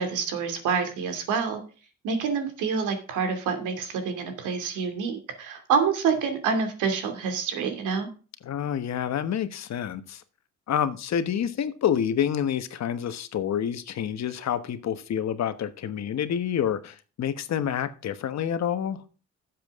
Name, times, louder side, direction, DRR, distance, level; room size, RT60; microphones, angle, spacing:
voice 1, 0.0-1.6 2.0-8.1, right 5 dB, 90° right, 2.7 m, -27 dB
voice 2, 8.4-10.2 10.7-19.0, left 9 dB, 60° left, 1.3 m, -28 dB
12.0 x 7.7 x 3.6 m
cardioid pair, 90°, 30 cm